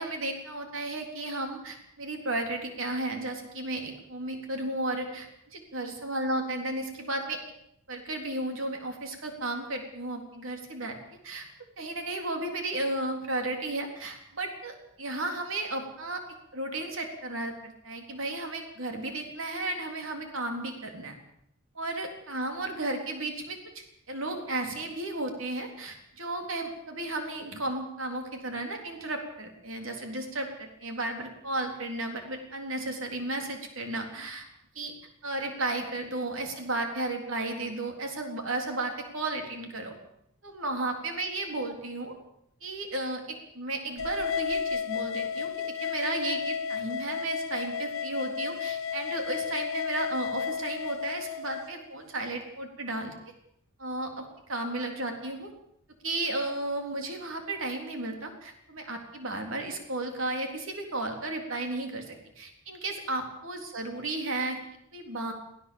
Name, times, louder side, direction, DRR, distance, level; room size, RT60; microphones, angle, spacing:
voice 1, 0.0-7.4 7.9-11.0 11.2-11.5 11.8-16.2 16.5-21.1 21.8-34.5 34.8-34.9 35.2-39.9 40.4-42.1 42.6-53.1 53.8-55.5 56.0-64.6 64.9-65.3, right 2 dB, 70° right, 4 dB, 3.6 m, -34 dB
sound 1, 44.0-51.7, left 6 dB, 70° left, 1.0 m, -32 dB
23.0 x 16.5 x 7.1 m, 0.74 s
head